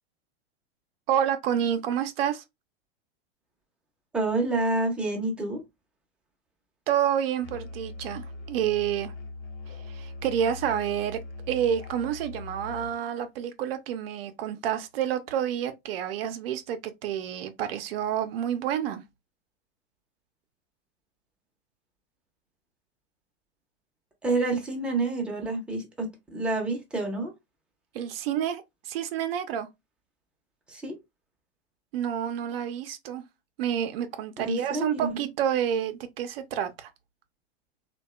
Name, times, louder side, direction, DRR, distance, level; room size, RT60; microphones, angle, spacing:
voice 1, 1.1-2.4 6.9-9.1 9.9-19.0 27.9-29.7 31.9-33.2 33.6-36.9, right 9 dB, 60° right, 0.5 m, -29 dB
voice 2, 4.1-5.6 24.2-27.3 30.7-31.0 34.4-35.2, right 2 dB, 5° right, 0.5 m, -28 dB
Musical instrument, 7.4-13.0, left 3 dB, 60° left, 0.7 m, -41 dB
2.6 x 2.2 x 2.3 m
hypercardioid pair, 105°, 34 cm